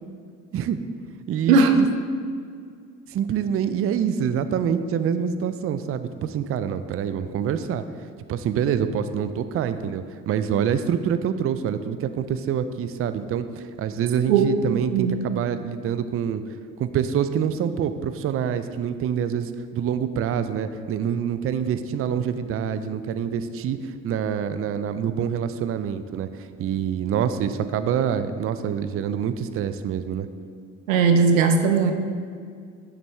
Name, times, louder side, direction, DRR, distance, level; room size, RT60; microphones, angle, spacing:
voice 1, 1.3-1.9 3.1-7.8 8.3-16.4 16.8-30.3, right 8 dB, 35° right, 11 dB, 0.4 m, -26 dB
voice 2, 14.3-15.2 30.9-31.9, right 5 dB, 85° right, 7 dB, 0.6 m, -18 dB
6.2 x 5.9 x 3.4 m, 2.2 s
hypercardioid pair, 50°, 40 cm